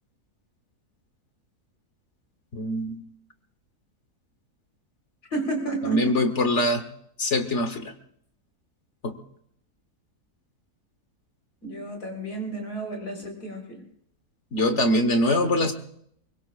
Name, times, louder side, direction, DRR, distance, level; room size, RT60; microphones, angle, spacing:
voice 1, 2.5-3.0 5.9-6.8 7.2-7.9 9.0-9.2 14.5-15.7, left 1 dB, 50° left, 8 dB, 1.4 m, -23 dB
voice 2, 5.3-6.2 11.6-13.9, right 2 dB, 80° left, 2 dB, 4.5 m, -31 dB
24.5 x 22.5 x 2.4 m, 0.69 s
omnidirectional pair, 1.6 m